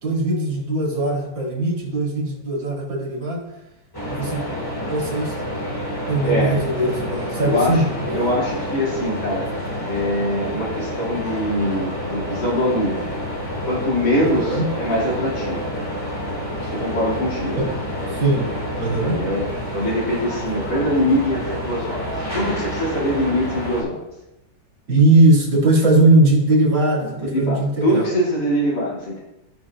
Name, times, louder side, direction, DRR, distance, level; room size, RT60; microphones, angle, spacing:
voice 1, 0.0-3.4 4.1-4.4 4.9-5.5 6.1-8.2 14.2-14.7 17.6-17.7 18.1-18.5 18.8-19.2 24.9-28.1, right 2 dB, 85° right, -3 dB, 3.0 m, -19 dB
sound 1, 3.9-23.8, equal, 10° left, 1.9 m, -28 dB
voice 2, 6.2-6.6 7.4-7.8 8.1-9.4 9.9-13.0 13.6-15.6 16.6-17.7 19.0-24.0 27.0-29.2, left 1 dB, 65° left, -5 dB, 3.0 m, -23 dB
14.0 x 6.1 x 2.4 m, 0.90 s
omnidirectional pair, 2.0 m